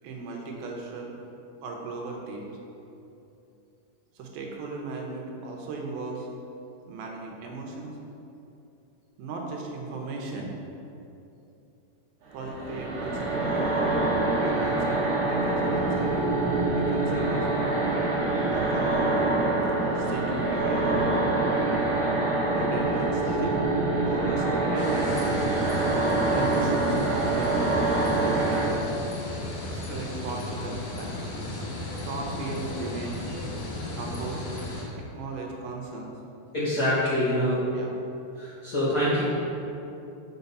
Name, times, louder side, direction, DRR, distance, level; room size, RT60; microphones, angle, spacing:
voice 1, 0.0-1.2 1.6-2.5 4.2-6.3 6.9-7.9 9.2-10.6 12.3-13.7 14.4-16.4 16.7-17.5 18.5-19.2 19.9-21.1 22.5-23.6 24.0-25.2 26.3-27.6 29.7-31.4 32.0-33.2 33.9-34.5 35.0-36.1 37.7-37.9, right 3 dB, 80° right, 0 dB, 2.6 m, -36 dB
sound 1, 12.3-28.7, right 2 dB, 60° right, 1.5 m, -25 dB
sound 2, 24.8-34.8, left 2 dB, 75° left, 3.0 m, -34 dB
voice 2, 36.5-37.6 38.4-39.2, left 1 dB, 45° left, -12 dB, 1.2 m, -25 dB
6.9 x 5.1 x 5.4 m, 2.8 s
omnidirectional pair, 4.4 m